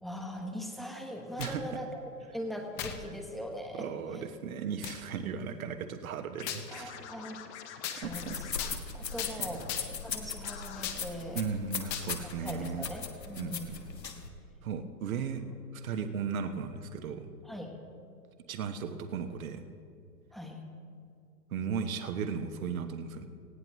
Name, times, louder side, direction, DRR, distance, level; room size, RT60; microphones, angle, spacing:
voice 1, 0.0-2.0 2.3-3.9 4.1-4.3 6.7-7.4 7.9-9.7 10.0-11.4 12.2-13.7 17.4-17.8 20.3-20.6, equal, ahead, 2 dB, 1.2 m, -41 dB
sound 1, 1.2-1.7 2.8-3.0 3.7-3.8 4.8-5.0 6.5-6.7 7.8-8.0 8.6-8.8 9.2-9.4 9.7-10.1 10.8-11.0 11.9-12.1, left 10 dB, 20° left, 0.8 m, -37 dB
voice 2, 3.8-7.0 8.0-8.4 11.3-12.9 13.4-13.6 14.6-15.4 15.7-17.3 18.5-19.6 21.5-23.3, right 6 dB, 55° right, 8 dB, 1.2 m, -36 dB
Scratching (performance technique), 6.4-9.7 10.0-10.1 10.4-10.9, left 9 dB, 45° left, 1.2 m, -47 dB
sound 2, 8.0-14.3, left 5 dB, 80° left, 1.6 m, -39 dB
19.5 x 16.0 x 3.1 m, 2.4 s
figure-of-eight pair, 120°, 49 cm